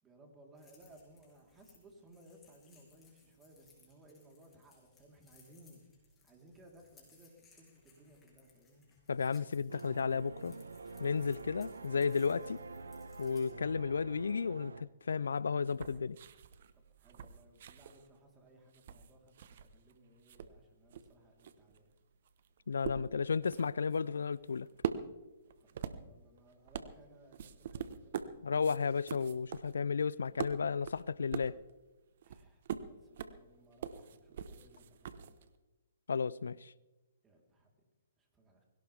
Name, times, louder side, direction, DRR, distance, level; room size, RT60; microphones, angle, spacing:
voice 1, 0.0-5.8 6.2-8.9 16.7-21.9 25.6-28.8 32.2-35.3 37.2-37.7 38.2-38.6, right 1 dB, 15° right, 3.9 m, -61 dB
sound 1, 0.6-13.5, left 4 dB, 15° left, 6.6 m, -66 dB
voice 2, 9.1-10.6 11.0-12.6 13.2-16.2 22.7-24.7 28.4-31.6 36.1-36.7, left 5 dB, 80° left, 0.4 m, -33 dB
sound 2, 9.7-14.8, right 4 dB, 85° right, 1.1 m, -47 dB
sound 3, 15.7-19.9 20.2-35.6, right 8 dB, 55° right, 1.1 m, -44 dB
21.5 x 17.5 x 3.6 m
hypercardioid pair, 135°, 0 cm